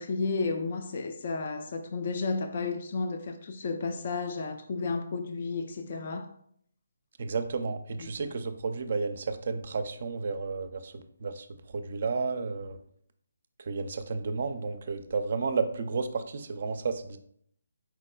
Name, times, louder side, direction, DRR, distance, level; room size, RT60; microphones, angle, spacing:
voice 1, 0.0-6.3 8.0-8.3, left 4 dB, 45° left, 0.3 m, -32 dB
voice 2, 7.2-11.5 11.7-12.8 13.6-17.2, right 4 dB, 45° right, 0.4 m, -32 dB
4.6 x 4.0 x 2.2 m
hypercardioid pair, 165°, 0 cm